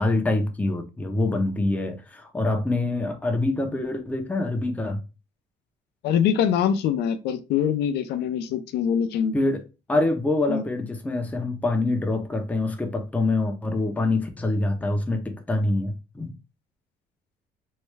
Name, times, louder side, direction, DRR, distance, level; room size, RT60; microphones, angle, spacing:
voice 1, 0.0-5.0 9.3-9.6 9.9-16.4, left 2 dB, 10° left, 0.6 m, -25 dB
voice 2, 6.0-9.3 10.5-10.6, left 8 dB, 75° left, 0.5 m, -24 dB
3.2 x 2.3 x 3.1 m
cardioid pair, 110°, 17 cm